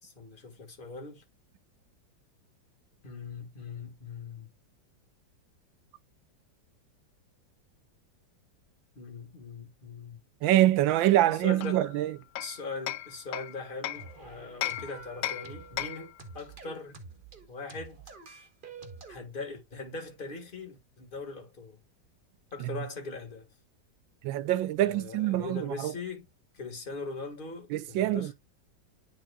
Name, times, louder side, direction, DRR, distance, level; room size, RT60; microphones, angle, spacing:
voice 1, 0.0-1.2 3.0-4.5 8.9-10.2 11.2-11.8 12.4-17.0 17.5-18.0 19.1-21.8 22.5-23.5 24.8-26.2 26.5-28.3, left 3 dB, 30° left, 1.7 m, -41 dB
voice 2, 10.4-12.1 22.6-22.7 24.2-25.9 27.7-28.3, right 14 dB, 85° right, 1.4 m, -25 dB
Hammer, 11.6-14.1 14.6-16.2, left 13 dB, 85° left, 1.3 m, -36 dB
sound 1, 14.0-19.2, right 4 dB, 35° right, 1.0 m, -47 dB
10.5 x 4.2 x 2.3 m
omnidirectional pair, 2.0 m